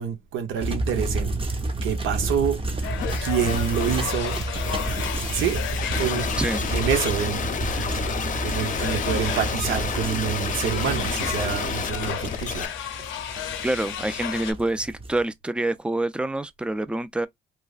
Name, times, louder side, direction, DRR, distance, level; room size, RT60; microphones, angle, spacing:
voice 1, 0.0-1.4 1.8-2.9 3.2-4.7 5.3-5.6 6.0-6.3 6.7-7.4 8.4-12.7 13.1-13.2, right 8 dB, 80° right, 0.9 m, -27 dB
sound 1, 0.6-15.2, right 2 dB, 25° right, 0.8 m, -30 dB
sound 2, 2.8-14.5, left 9 dB, 90° left, 0.7 m, -34 dB
sound 3, 3.0-12.7, left 6 dB, 40° left, 0.6 m, -31 dB
voice 2, 13.6-17.3, right 2 dB, 5° right, 0.3 m, -26 dB
3.2 x 2.1 x 2.4 m
cardioid pair, 90°, 20 cm